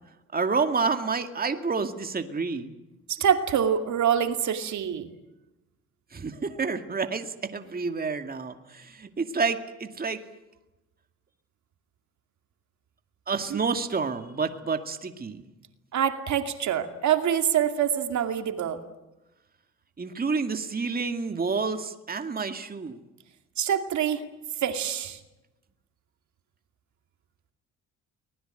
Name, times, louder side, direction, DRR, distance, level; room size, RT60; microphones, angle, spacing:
voice 1, 0.3-2.7 6.1-10.2 13.3-15.5 20.0-23.0, right 4 dB, 30° right, 7 dB, 2.2 m, -29 dB
voice 2, 3.1-5.1 13.5-13.6 15.9-18.8 23.6-24.2 24.6-25.2, right 9 dB, 70° right, 7 dB, 2.5 m, -25 dB
24.5 x 20.0 x 9.1 m, 1.0 s
cardioid pair, 90°, 30 cm